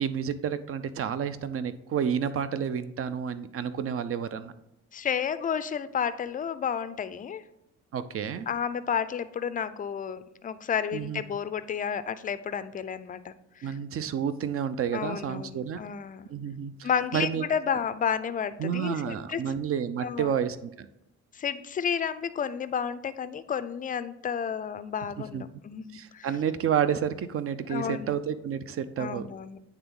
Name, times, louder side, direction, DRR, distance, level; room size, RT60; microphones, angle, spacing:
voice 1, 0.0-4.5 7.9-8.5 10.9-11.2 13.6-15.8 16.3-17.4 18.6-20.7 25.2-25.4 25.9-29.3, right 8 dB, 50° right, 13 dB, 0.5 m, -30 dB
voice 2, 4.9-7.4 8.5-13.3 13.6-13.7 14.9-16.3 16.8-19.4 20.0-20.3 21.3-26.3 27.7-28.1 29.0-29.6, left 7 dB, 30° left, 13 dB, 0.4 m, -31 dB
8.6 x 3.4 x 3.7 m, 0.81 s
cardioid pair, 90°, 30 cm